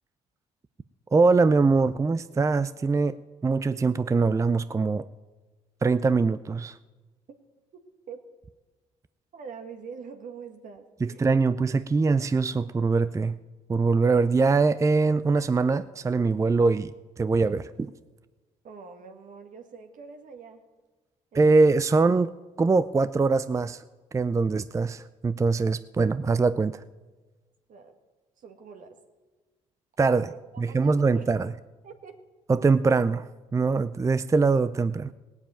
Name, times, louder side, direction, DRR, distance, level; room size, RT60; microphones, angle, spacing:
voice 1, 1.1-3.2 3.4-5.1 5.8-6.8 11.0-13.4 13.7-16.9 17.2-17.9 21.3-22.3 22.6-23.8 24.1-26.8 30.0-30.3 30.6-31.5 32.5-35.1, right 4 dB, 20° right, 15 dB, 0.5 m, -23 dB
voice 2, 9.3-11.3 18.6-20.6 27.7-28.0 28.4-29.0 30.1-31.3 31.8-32.2, right 5 dB, 60° right, 5 dB, 1.8 m, -44 dB
17.0 x 7.2 x 8.8 m, 1.3 s
supercardioid pair, 65°, 15 cm